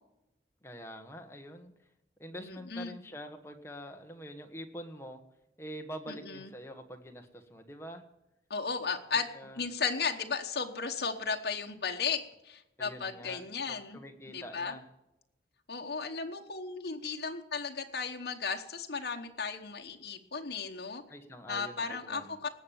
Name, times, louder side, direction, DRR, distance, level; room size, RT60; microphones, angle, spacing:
voice 1, 0.6-1.7 2.2-5.2 5.6-8.0 9.3-9.6 12.8-13.4 13.7-14.9 21.1-22.4, equal, 15° left, 4 dB, 1.3 m, -45 dB
voice 2, 2.4-2.9 6.1-6.5 8.5-9.3 9.5-14.0 14.3-14.7 15.7-21.0 21.5-22.5, left 5 dB, 70° left, 2 dB, 1.1 m, -35 dB
19.0 x 7.5 x 7.0 m, 0.90 s
head